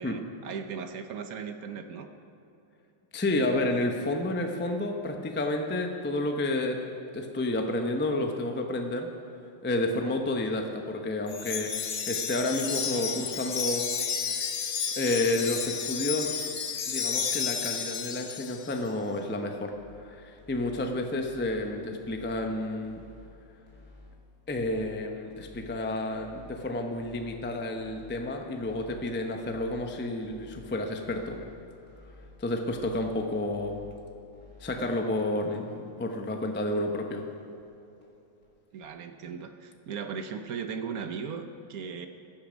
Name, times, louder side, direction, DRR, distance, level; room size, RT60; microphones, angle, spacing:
voice 1, 0.0-2.1 38.7-42.1, right 6 dB, 60° right, 7 dB, 1.0 m, -37 dB
voice 2, 3.1-6.8 7.1-9.1 9.6-13.9 15.0-16.5 16.8-23.0 24.5-31.4 32.4-33.8 34.6-37.3, left 2 dB, 15° left, 3 dB, 0.3 m, -30 dB
Wind chime, 11.3-18.8, left 6 dB, 50° left, 0.9 m, -32 dB
sound 1, 19.6-20.0 20.4-20.8 21.2-21.6 22.0-22.4 22.8-23.3 23.7-24.1 24.5-24.9 25.3-25.7 26.1-26.5 26.9-27.4 27.8-28.2 28.6-29.0 29.4-29.8 30.2-30.7 31.0-31.5 31.9-32.3 32.7-33.1 33.5-33.9 34.3-34.7 35.1-35.2 35.6-35.7 36.0-36.1 36.4-36.5 36.8-36.9 37.2-37.3 37.6-37.7 38.0-38.1 38.4-38.5 38.8-38.9, left 2 dB, 35° left, 3.1 m, -52 dB
15.5 x 10.5 x 5.2 m, 2.8 s
omnidirectional pair, 2.1 m